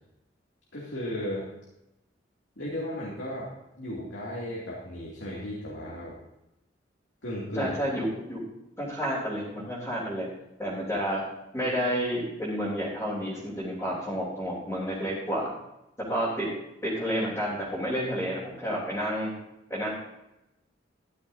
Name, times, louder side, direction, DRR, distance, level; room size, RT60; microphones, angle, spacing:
voice 1, 0.7-1.5 2.6-3.5 3.8-6.2 7.2-7.7, equal, 80° left, -5 dB, 2.6 m, -35 dB
voice 2, 7.5-8.4 8.8-10.3 10.6-11.2 11.5-15.5 16.0-16.5 16.8-19.3 19.7-19.9, equal, 15° left, -10 dB, 3.4 m, -30 dB
14.0 x 12.0 x 2.8 m, 0.89 s
head